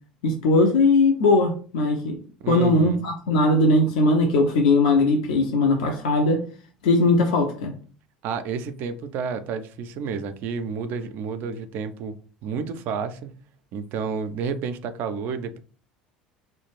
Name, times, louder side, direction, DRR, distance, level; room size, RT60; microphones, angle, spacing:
voice 1, 0.2-2.2 2.5-6.4 6.8-7.7, left 2 dB, 65° left, 0.4 m, -19 dB
voice 2, 2.4-3.0 8.2-12.2 12.4-13.3 13.7-15.6, right 5 dB, 50° right, 0.3 m, -30 dB
2.4 x 2.1 x 3.0 m
figure-of-eight pair, 65°, 4 cm